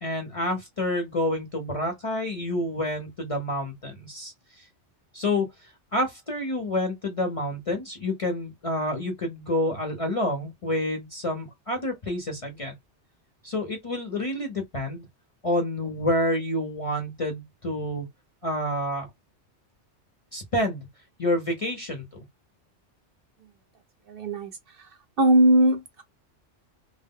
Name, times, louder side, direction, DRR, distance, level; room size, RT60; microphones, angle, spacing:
voice 1, 0.0-4.3 5.1-5.5 5.9-12.7 13.4-15.1 15.4-18.1 18.4-19.1 20.3-20.9 21.2-22.2, left 1 dB, 40° left, 0.6 m, -28 dB
voice 2, 24.1-26.0, right 1 dB, 60° right, 0.7 m, -21 dB
2.1 x 2.1 x 3.5 m
omnidirectional pair, 1.2 m